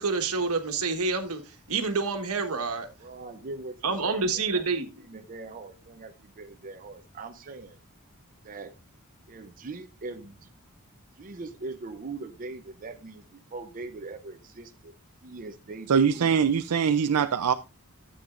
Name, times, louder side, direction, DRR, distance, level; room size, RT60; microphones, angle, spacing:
voice 1, 0.0-2.9 3.8-4.9, right 4 dB, 70° right, 1.4 m, -28 dB
voice 2, 3.0-4.7 5.1-7.8 8.4-8.8 9.3-10.5 11.2-14.9 15.2-16.3, right 3 dB, 40° right, 0.6 m, -41 dB
voice 3, 15.9-17.5, right 7 dB, 85° right, 0.5 m, -22 dB
13.0 x 7.9 x 2.5 m
head